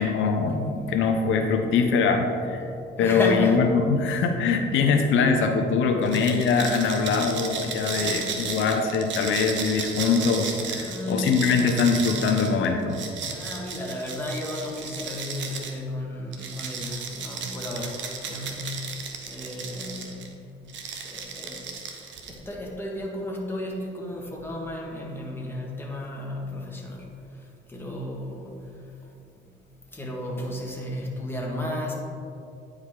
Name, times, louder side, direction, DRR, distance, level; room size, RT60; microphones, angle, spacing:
voice 1, 0.0-2.6 3.0-13.0, left 5 dB, 80° left, 4 dB, 0.6 m, -23 dB
voice 2, 3.0-3.6 6.0-6.2 7.8-8.3 10.7-11.4 13.2-17.9 18.2-18.8 19.3-20.4 20.6-20.7 21.0-21.6 22.3-27.1 27.7-28.7 29.9-31.9, left 1 dB, 10° left, -2 dB, 1.5 m, -33 dB
sound 1, 6.0-15.8 16.3-20.3 20.7-22.5, right 5 dB, 70° right, 0.9 m, -35 dB
9.4 x 4.9 x 3.7 m, 2.6 s
cardioid pair, 90°, 20 cm